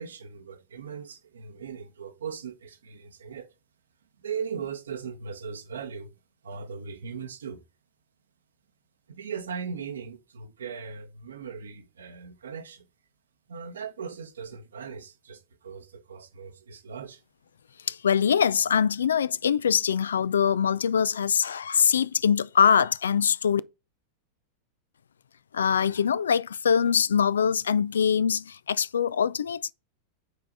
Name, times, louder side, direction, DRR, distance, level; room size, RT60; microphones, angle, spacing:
voice 1, 0.0-3.5 4.2-6.1 6.4-7.6 9.1-12.9 13.5-17.2, right 6 dB, 70° right, 1.1 m, -38 dB
voice 2, 17.9-23.6 25.5-29.7, left 7 dB, 70° left, 0.3 m, -23 dB
8.2 x 4.7 x 4.6 m
figure-of-eight pair, 90°, 0 cm